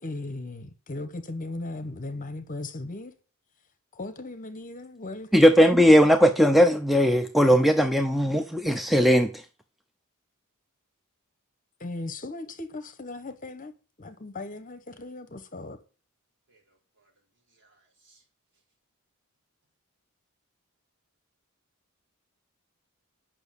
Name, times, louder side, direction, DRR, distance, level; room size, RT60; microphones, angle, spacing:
voice 1, 0.0-3.1 3.9-5.5 11.8-13.7 14.0-15.8, left 2 dB, 40° left, 1.1 m, -37 dB
voice 2, 5.3-9.4, equal, ahead, 0.6 m, -19 dB
voice 3, 16.5-17.1 17.5-18.2, right 3 dB, 55° right, 4.0 m, -65 dB
9.0 x 6.0 x 8.3 m
head